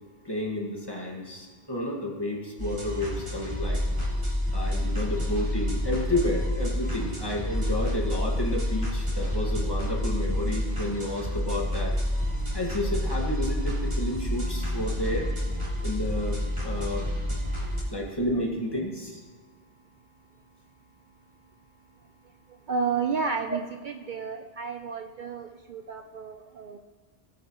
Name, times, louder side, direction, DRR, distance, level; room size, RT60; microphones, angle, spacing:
voice 1, 0.2-3.8 4.5-12.0 12.5-15.3 15.8-17.1 17.9-19.2, left 1 dB, 25° left, -2 dB, 1.9 m, -31 dB
sound 1, 2.6-17.8, left 1 dB, 30° right, 2.8 m, -29 dB
voice 2, 22.7-26.8, right 5 dB, 55° right, 6 dB, 0.7 m, -31 dB
18.5 x 9.3 x 3.1 m, 1.5 s
omnidirectional pair, 1.0 m